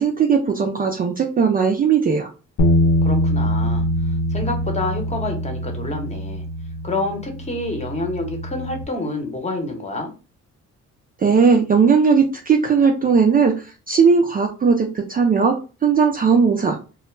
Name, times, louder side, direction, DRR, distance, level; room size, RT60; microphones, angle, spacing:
voice 1, 0.0-2.3 11.2-13.5 13.9-15.6 15.8-16.8, right 5 dB, 30° right, 2 dB, 0.4 m, -17 dB
sound 1, 2.6-8.8, equal, 60° left, 0.6 m, -23 dB
voice 2, 3.0-6.4 6.8-10.1, left 2 dB, 20° left, 3 dB, 0.8 m, -28 dB
2.2 x 2.0 x 3.1 m, 0.33 s
cardioid pair, 90°, 30 cm